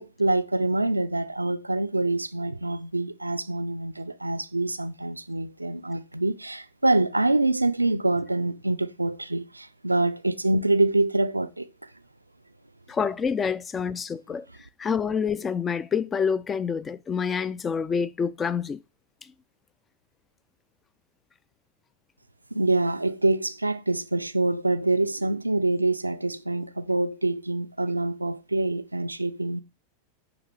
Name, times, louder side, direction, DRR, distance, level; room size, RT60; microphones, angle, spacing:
voice 1, 0.0-11.7 22.5-29.6, right 2 dB, 85° right, 0.3 m, -25 dB
voice 2, 12.9-14.5 14.8-18.8, left 6 dB, 20° left, 0.3 m, -27 dB
6.0 x 5.0 x 3.2 m
figure-of-eight pair, 90°, 0 cm